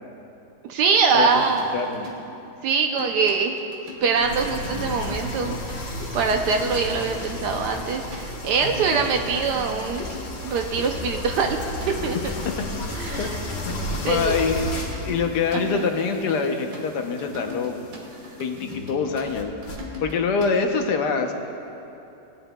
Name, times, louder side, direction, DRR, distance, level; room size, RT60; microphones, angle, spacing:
voice 1, 0.7-1.7 2.6-3.6 4.0-10.1 10.4-11.6 12.0-12.3 12.9-13.4 14.0-14.4 15.5-15.9, right 5 dB, 75° right, 4 dB, 1.2 m, -23 dB
sound 1, 0.9-2.2 3.0-20.5, left 3 dB, 55° right, 1.7 m, -40 dB
sound 2, 1.3-1.8 4.0-19.8, left 1 dB, 90° left, 2.0 m, -34 dB
voice 2, 1.7-2.1 13.2-13.3 13.6-14.6 15.0-17.7 18.4-19.6 20.0-21.3, left 5 dB, 75° left, 5 dB, 1.3 m, -25 dB
18.0 x 9.8 x 2.2 m, 2.9 s
omnidirectional pair, 1.9 m